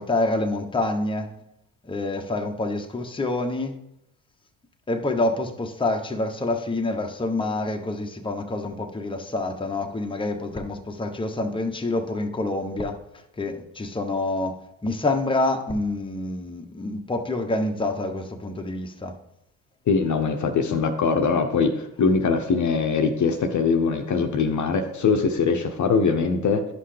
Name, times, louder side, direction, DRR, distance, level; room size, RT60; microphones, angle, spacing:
voice 1, 0.0-1.3 1.8-3.8 4.9-13.0 13.4-19.2, left 2 dB, 10° left, 1.0 m, -27 dB
voice 2, 19.9-26.7, left 5 dB, 45° left, 0.9 m, -22 dB
10.0 x 5.6 x 3.3 m
supercardioid pair, 65°, 40 cm